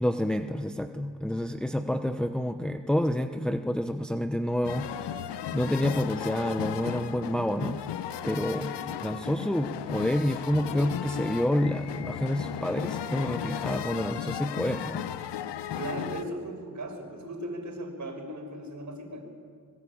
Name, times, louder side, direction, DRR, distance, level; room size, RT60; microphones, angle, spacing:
voice 1, 0.0-5.3 5.5-7.8 8.2-8.7 9.0-15.0, left 1 dB, ahead, 7 dB, 0.9 m, -28 dB
sound 1, 4.6-16.2, left 10 dB, 75° left, 1.1 m, -35 dB
voice 2, 8.5-9.0 15.8-19.2, right 1 dB, 40° right, 4 dB, 5.9 m, -37 dB
25.0 x 20.5 x 8.7 m, 2.1 s
cardioid pair, 90°, 42 cm